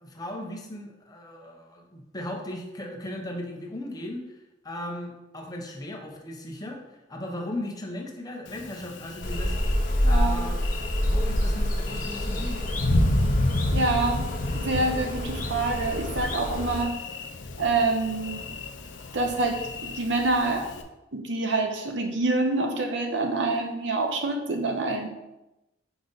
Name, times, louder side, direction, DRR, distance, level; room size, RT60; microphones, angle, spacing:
voice 1, 0.0-4.4 4.6-9.6 10.1-10.6 11.0-12.7, left 1 dB, 20° left, 0 dB, 0.9 m, -37 dB
Thunder, 8.5-20.8, left 1 dB, 70° left, 0.6 m, -31 dB
sound 1, 9.2-16.8, equal, 45° left, 1.1 m, -27 dB
voice 2, 10.0-10.4 13.7-14.3 14.5-16.9 17.6-18.5 19.1-20.7 21.1-25.1, right 2 dB, 65° right, 3 dB, 0.8 m, -26 dB
5.1 x 5.0 x 4.0 m, 0.96 s
head